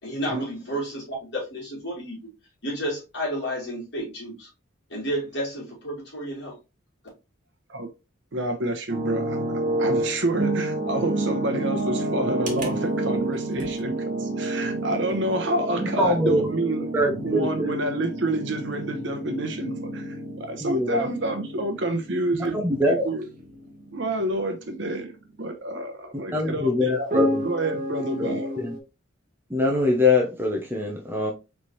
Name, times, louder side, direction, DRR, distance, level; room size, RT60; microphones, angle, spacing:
voice 1, 0.0-2.2 2.6-4.5 4.9-6.6, equal, 55° left, 2.4 m, -31 dB
voice 2, 8.3-9.4 9.8-16.9 17.2-22.6 22.9-23.3 23.9-25.1 25.4-27.2 27.4-28.6, right 1 dB, 60° right, 0.9 m, -28 dB
sound 1, 8.9-24.4 24.7-24.9 27.1-28.8, right 1 dB, 40° right, 1.1 m, -29 dB
voice 3, 15.8-16.4 16.9-17.7 20.6-21.0 22.3-23.0 26.3-27.4 28.2-28.3 28.6-28.7 29.5-31.3, left 2 dB, 10° right, 0.7 m, -23 dB
4.2 x 3.4 x 3.1 m
head